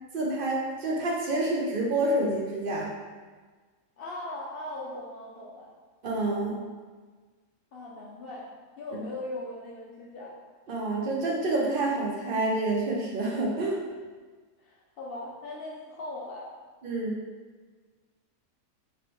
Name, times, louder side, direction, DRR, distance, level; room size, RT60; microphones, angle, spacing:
voice 1, 0.1-2.9 6.0-6.6 10.7-13.8 16.8-17.2, right 2 dB, 65° right, -2 dB, 0.5 m, -28 dB
voice 2, 4.0-5.7 7.7-8.5 8.8-10.4 14.6-16.5, left 2 dB, 80° left, -4 dB, 0.5 m, -39 dB
4.1 x 3.0 x 3.0 m, 1.4 s
omnidirectional pair, 1.5 m